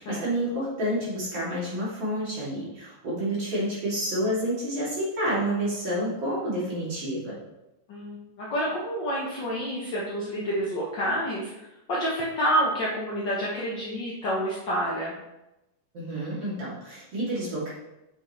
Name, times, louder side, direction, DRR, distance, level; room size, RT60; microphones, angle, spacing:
voice 1, 0.0-7.4 15.9-17.7, right 1 dB, 50° right, -8 dB, 3.7 m, -29 dB
voice 2, 7.9-15.2, equal, 70° left, -5 dB, 1.0 m, -28 dB
8.0 x 6.1 x 3.2 m, 0.94 s
omnidirectional pair, 3.6 m